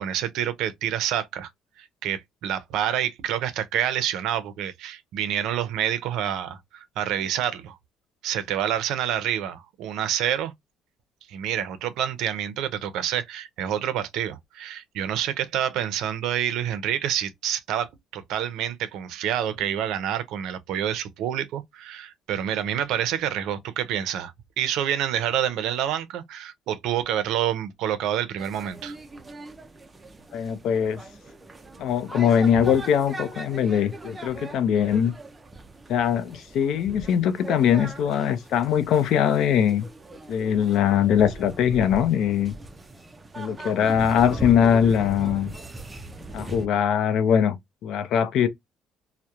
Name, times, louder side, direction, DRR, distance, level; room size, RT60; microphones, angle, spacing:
voice 1, 0.0-1.5 1.8-7.8 8.2-10.5 11.3-24.3 24.6-29.0, right 10 dB, 80° right, 0.5 m, -28 dB
sound 1, 28.4-46.7, right 2 dB, 15° right, 0.3 m, -40 dB
voice 2, 30.3-31.0 31.8-35.2 35.9-39.9 40.3-42.5 43.4-45.5 46.3-47.6 47.8-48.5, left 8 dB, 65° left, 0.4 m, -22 dB
2.8 x 2.0 x 2.3 m
cardioid pair, 160°, 0 cm